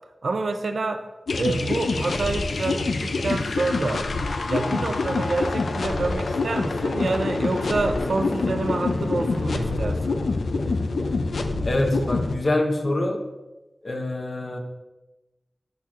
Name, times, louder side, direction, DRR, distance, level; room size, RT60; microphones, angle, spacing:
voice 1, 0.2-1.0 1.4-4.0 4.5-10.2, right 3 dB, 80° right, 7 dB, 0.5 m, -27 dB
sound 1, 1.3-12.3, left 3 dB, 85° left, 0.4 m, -26 dB
voice 2, 11.6-13.2 13.8-14.6, left 1 dB, 60° left, 2 dB, 1.0 m, -25 dB
10.5 x 4.3 x 2.5 m, 1.1 s
cardioid pair, 40°, 0 cm